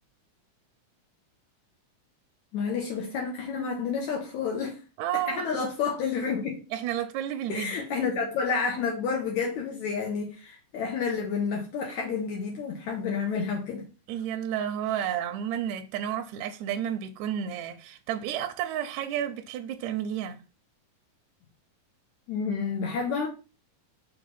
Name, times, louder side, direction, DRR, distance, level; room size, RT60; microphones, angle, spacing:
voice 1, 2.5-4.8 5.3-6.6 7.5-13.8 22.3-23.3, left 5 dB, 70° left, 2.4 m, -30 dB
voice 2, 5.0-5.7 6.7-8.1 14.1-20.4, right 10 dB, 75° right, 1.8 m, -31 dB
5.7 x 3.6 x 5.4 m
omnidirectional pair, 3.7 m